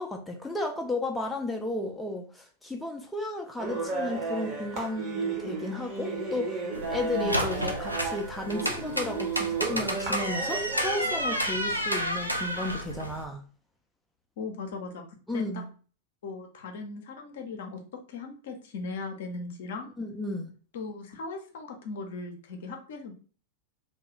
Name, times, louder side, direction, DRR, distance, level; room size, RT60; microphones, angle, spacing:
voice 1, 0.0-6.6 6.9-13.4 15.3-15.6 20.0-20.5, left 2 dB, 5° left, 2 dB, 0.4 m, -33 dB
sound 1, 3.6-11.4, right 3 dB, 35° right, 0.9 m, -33 dB
sound 2, 6.7-13.2, equal, 90° right, 0.4 m, -31 dB
voice 2, 14.4-15.0 15.3-15.4 16.2-17.8 18.1-19.9 20.7-23.1, left 3 dB, 60° left, 3 dB, 0.5 m, -38 dB
2.3 x 2.2 x 2.8 m, 0.39 s
figure-of-eight pair, 90°, 0 cm